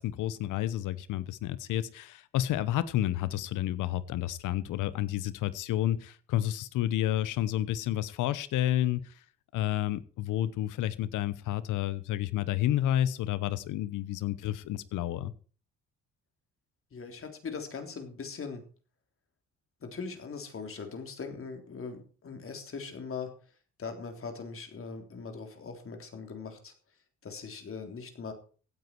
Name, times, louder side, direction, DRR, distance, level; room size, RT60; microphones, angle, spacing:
voice 1, 0.0-9.1 9.5-15.3, left 13 dB, 90° left, 17 dB, 1.0 m, -30 dB
voice 2, 16.9-18.6 19.8-23.3 23.8-26.7 27.2-28.3, left 5 dB, 45° left, 5 dB, 3.5 m, -40 dB
16.5 x 9.5 x 4.6 m, 0.39 s
cardioid pair, 90°, 30 cm